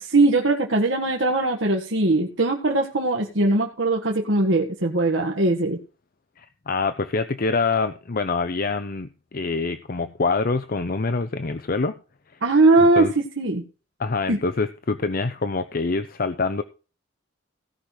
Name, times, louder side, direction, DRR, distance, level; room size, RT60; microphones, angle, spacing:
voice 1, 0.0-5.8 12.4-13.6 14.3-14.4, right 2 dB, 70° right, 1 dB, 1.7 m, -20 dB
voice 2, 6.4-12.0 13.0-13.1 14.0-16.6, left 4 dB, 50° left, 10 dB, 0.7 m, -25 dB
17.0 x 5.9 x 4.9 m, 0.35 s
head